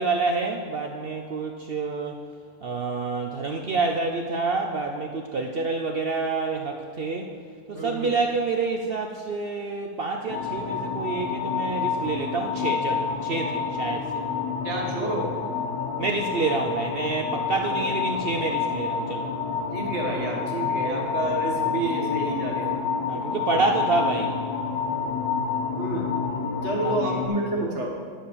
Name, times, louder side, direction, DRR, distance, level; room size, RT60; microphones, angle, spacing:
voice 1, 0.0-2.2 2.6-7.3 7.7-14.2 16.0-19.3 23.1-24.3 26.8-27.3, right 3 dB, 70° right, 3 dB, 0.5 m, -28 dB
voice 2, 7.7-8.1 14.6-15.3 17.6-17.8 19.7-22.7 25.8-26.2 26.6-28.0, right 2 dB, 45° right, -1 dB, 1.7 m, -29 dB
sound 1, 10.3-27.3, left 6 dB, 85° left, 1.4 m, -28 dB
10.5 x 5.0 x 6.8 m, 2.3 s
omnidirectional pair, 1.7 m